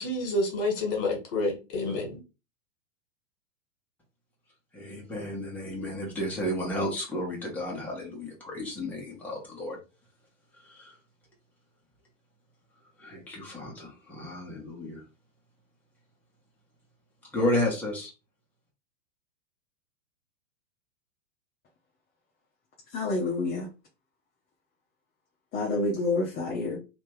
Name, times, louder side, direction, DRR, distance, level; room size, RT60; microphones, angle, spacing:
voice 1, 0.0-2.2, left 2 dB, 45° left, 1 dB, 1.9 m, -29 dB
voice 2, 4.7-9.8 10.7-10.9 13.0-15.0 17.3-18.1, left 1 dB, 5° left, -4 dB, 1.5 m, -32 dB
voice 3, 22.9-23.7 25.5-26.8, left 2 dB, 25° left, -2 dB, 1.0 m, -28 dB
3.2 x 2.9 x 3.3 m, 0.29 s
figure-of-eight pair, 105°, 39 cm